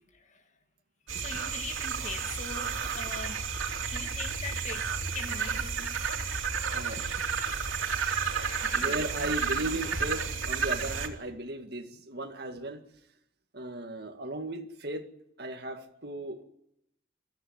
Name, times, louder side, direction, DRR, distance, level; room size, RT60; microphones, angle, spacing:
voice 1, 0.1-0.4 1.1-3.5 3.9-6.0 8.6-8.9, left 3 dB, 35° left, 1.7 m, -42 dB
sound 1, 1.1-11.1, right 6 dB, 85° right, 3.0 m, -32 dB
voice 2, 6.7-7.1 8.3-8.4 8.7-12.8 13.5-15.1 15.4-16.4, right 1 dB, 55° right, 2.1 m, -36 dB
23.0 x 14.5 x 9.5 m
head